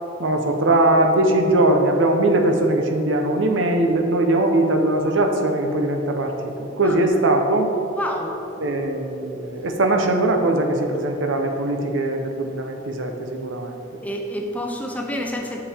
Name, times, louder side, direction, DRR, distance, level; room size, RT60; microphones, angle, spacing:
voice 1, 0.2-7.7 8.6-13.8, right 2 dB, 80° right, 4 dB, 0.8 m, -20 dB
voice 2, 7.9-8.4 14.0-15.6, equal, 10° left, 1 dB, 0.6 m, -28 dB
7.1 x 7.1 x 3.5 m, 2.9 s
head